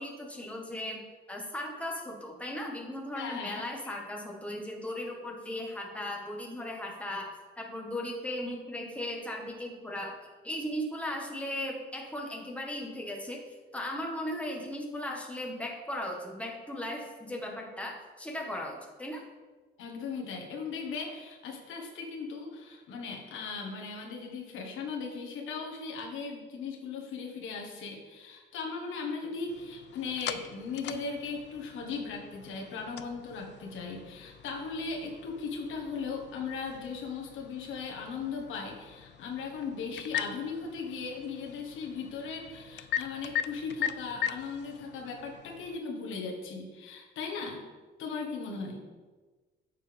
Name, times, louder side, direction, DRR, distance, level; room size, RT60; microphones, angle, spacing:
voice 1, 0.0-19.3, left 1 dB, 5° left, 0 dB, 1.5 m, -37 dB
voice 2, 3.1-3.7 19.8-47.6 48.0-48.8, left 4 dB, 85° left, 0 dB, 1.5 m, -38 dB
sound 1, 29.5-45.8, left 10 dB, 60° left, 0.4 m, -41 dB
9.1 x 6.7 x 3.5 m, 1.3 s
cardioid pair, 90°, 20 cm